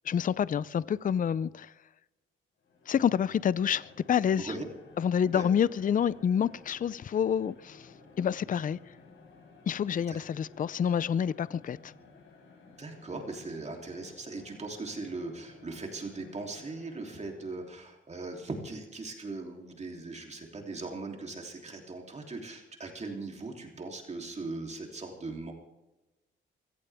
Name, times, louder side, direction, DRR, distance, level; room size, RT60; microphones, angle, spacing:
voice 1, 0.0-1.7 2.9-4.5 5.0-8.9 9.7-11.9, left 8 dB, 40° left, 0.5 m, -28 dB
sound 1, 2.6-17.9, left 3 dB, 75° left, 7.1 m, -55 dB
voice 2, 12.8-25.5, right 3 dB, 35° right, 3.2 m, -39 dB
24.0 x 15.5 x 3.5 m
cardioid pair, 105°, 20 cm